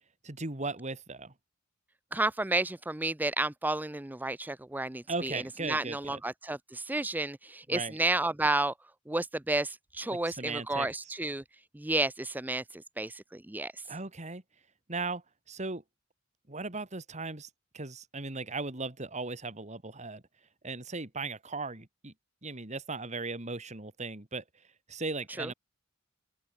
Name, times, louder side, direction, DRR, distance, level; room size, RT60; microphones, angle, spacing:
voice 1, 0.2-1.3 5.1-6.2 7.7-8.0 10.1-10.9 13.9-14.4 14.9-15.2 15.5-15.8 16.5-17.5 17.7-20.2 20.6-22.1 22.4-24.4 24.9-25.5, right 3 dB, 35° right, 2.4 m, -37 dB
voice 2, 2.1-8.7 9.1-11.4 11.7-13.9 25.4-25.5, right 2 dB, 10° right, 0.5 m, -31 dB
open air
head